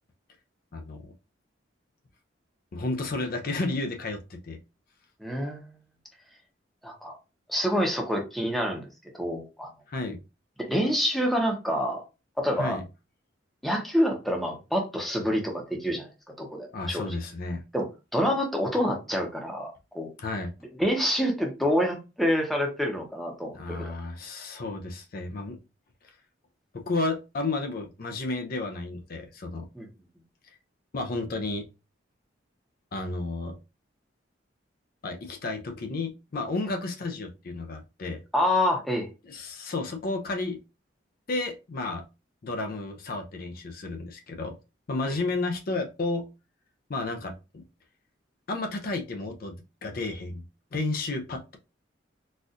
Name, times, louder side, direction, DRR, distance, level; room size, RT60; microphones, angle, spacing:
voice 1, 0.7-1.1 2.7-4.6 9.9-10.2 12.6-12.8 16.7-17.6 20.2-20.5 23.5-25.6 26.0-26.2 26.9-29.7 30.9-31.6 32.9-33.6 35.0-38.2 39.2-40.6 41.3-42.0 42.4-44.6 44.9-46.3 46.9-47.6 48.5-49.5 49.8-50.5 50.7-51.6, left 2 dB, 50° left, 0.5 m, -32 dB
voice 2, 5.2-5.7 6.8-7.2 7.5-8.8 9.2-9.7 10.6-12.0 12.4-12.8 13.6-16.1 16.4-17.1 17.7-17.9 18.1-20.1 20.8-23.8 29.7-29.9 38.3-39.1, equal, ahead, 0.8 m, -27 dB
4.1 x 2.4 x 2.5 m
head